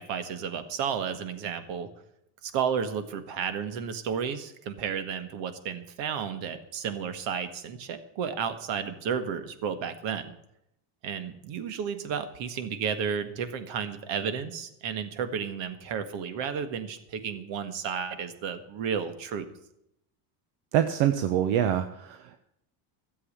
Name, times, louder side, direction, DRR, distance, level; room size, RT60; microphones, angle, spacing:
voice 1, 0.0-1.9 2.4-10.3 11.0-19.5, right 7 dB, 60° right, 11 dB, 1.8 m, -32 dB
voice 2, 20.7-22.4, right 10 dB, 75° right, 9 dB, 1.2 m, -25 dB
13.5 x 7.8 x 8.7 m, 0.79 s
cardioid pair, 140°, 50 cm